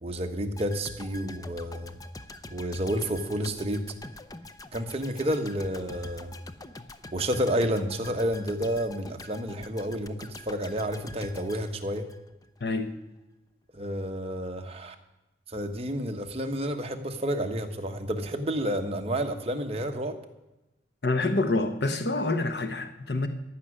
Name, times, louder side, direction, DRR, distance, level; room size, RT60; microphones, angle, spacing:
voice 1, 0.0-2.0 2.5-3.9 4.7-6.3 7.1-12.1 13.7-14.9 15.5-20.2, equal, 30° right, 4 dB, 1.2 m, -30 dB
sound 1, 0.6-12.6 12.9-13.0, left 2 dB, 20° left, 0.6 m, -45 dB
voice 2, 12.6-12.9 21.0-23.3, left 2 dB, 60° left, 7 dB, 1.0 m, -27 dB
14.5 x 6.3 x 9.9 m, 0.98 s
head